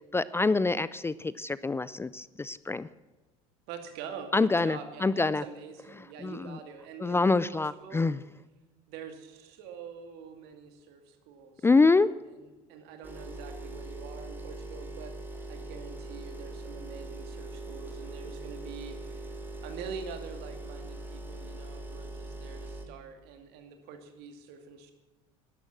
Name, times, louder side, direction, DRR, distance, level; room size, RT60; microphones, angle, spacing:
voice 1, 0.1-2.9 4.3-5.4 6.2-6.6 7.0-8.2 11.6-12.1, left 3 dB, 15° left, 18 dB, 0.4 m, -25 dB
voice 2, 3.7-8.1 8.9-15.2 15.5-24.9, right 6 dB, 65° right, 6 dB, 2.3 m, -45 dB
sound 1, 13.0-22.9, right 2 dB, 10° right, 2.7 m, -41 dB
11.5 x 11.0 x 7.3 m, 1.1 s
hypercardioid pair, 85°, 17 cm